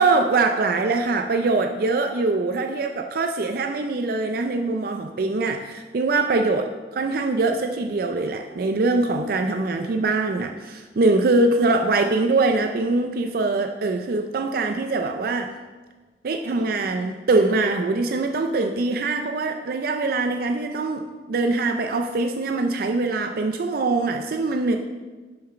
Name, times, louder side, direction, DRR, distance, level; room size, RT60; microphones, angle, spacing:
voice 1, 0.0-15.5 16.2-24.8, right 3 dB, 55° right, 5 dB, 0.4 m, -23 dB
6.4 x 5.7 x 5.7 m, 1.3 s
head